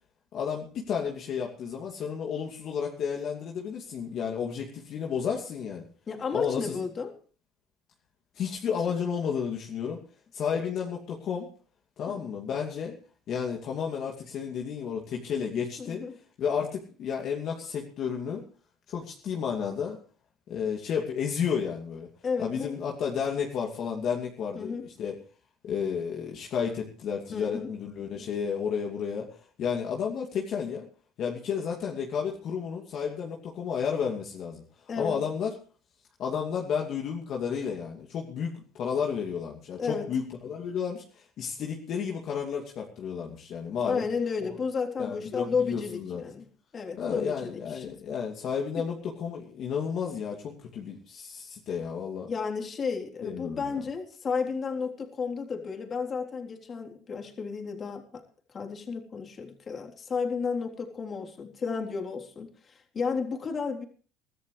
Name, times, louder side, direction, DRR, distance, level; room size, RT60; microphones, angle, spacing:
voice 1, 0.3-5.8 6.3-6.8 8.3-10.0 10.3-11.5 12.0-13.0 13.3-16.0 16.4-18.4 18.9-20.0 20.5-22.1 22.4-25.1 25.6-30.9 31.2-34.6 35.0-35.5 36.2-44.0 44.5-44.6 45.0-46.2 47.0-52.3 53.2-53.7, left 7 dB, 55° left, 0 dB, 2.6 m, -32 dB
voice 2, 6.1-7.2 8.9-9.0 12.1-12.2 15.8-16.1 22.2-22.7 24.6-24.9 27.3-27.7 34.9-35.2 39.8-40.1 43.8-46.5 46.7-48.0 48.8-48.9 52.3-58.2 58.5-63.8, left 5 dB, 40° left, 2 dB, 3.6 m, -32 dB
23.0 x 14.0 x 3.3 m, 0.40 s
supercardioid pair, 80°, 0 cm